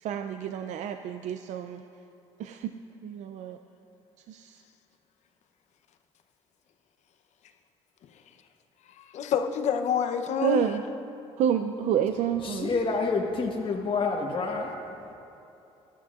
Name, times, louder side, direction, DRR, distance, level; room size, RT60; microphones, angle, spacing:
voice 1, 0.0-1.8 2.4-2.7 3.0-3.6 4.3-4.5 10.4-10.8 11.4-13.0, right 9 dB, 70° right, 8 dB, 0.4 m, -29 dB
voice 2, 8.9-10.8, left 7 dB, 70° left, 6 dB, 0.7 m, -28 dB
voice 3, 12.4-15.1, left 4 dB, 45° left, -1 dB, 1.2 m, -29 dB
17.0 x 12.0 x 2.4 m, 2.9 s
supercardioid pair, 70°, 12 cm